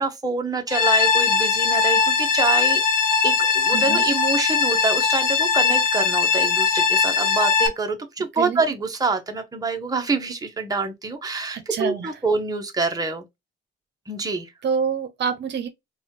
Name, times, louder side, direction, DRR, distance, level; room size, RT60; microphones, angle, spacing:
voice 1, 0.0-2.8 3.2-13.2 14.1-14.5, right 4 dB, 20° right, 0.9 m, -26 dB
sound 1, 0.7-7.7, left 5 dB, 45° left, 1.1 m, -20 dB
voice 2, 3.7-4.0 8.4-8.6 11.5-12.1 14.6-15.7, right 7 dB, 60° right, 0.7 m, -26 dB
4.0 x 2.3 x 2.9 m
cardioid pair, 90°, 20 cm